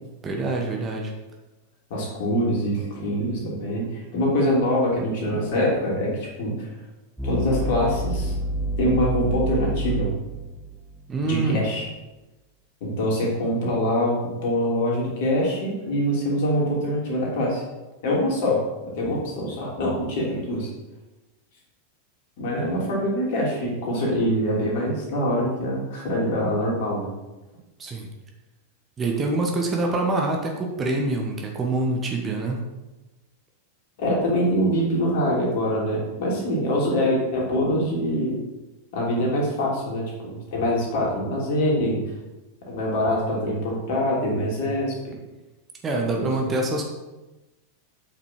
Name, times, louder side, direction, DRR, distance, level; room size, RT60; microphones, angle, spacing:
voice 1, 0.2-1.1 11.1-11.6 27.8-28.1 29.0-32.6 45.8-46.9, right 2 dB, 20° right, 1 dB, 1.3 m, -25 dB
voice 2, 1.9-6.7 7.2-8.3 8.8-10.1 11.3-11.8 12.8-14.1 14.4-17.6 18.0-18.6 19.0-20.7 22.4-27.1 34.0-38.4 38.9-42.0 42.7-45.1 46.2-46.3, equal, 50° left, -3 dB, 3.0 m, -24 dB
sound 1, 7.2-11.3, right 1 dB, 5° right, 1.4 m, -28 dB
8.0 x 5.9 x 4.4 m, 1.1 s
figure-of-eight pair, 90°, 0 cm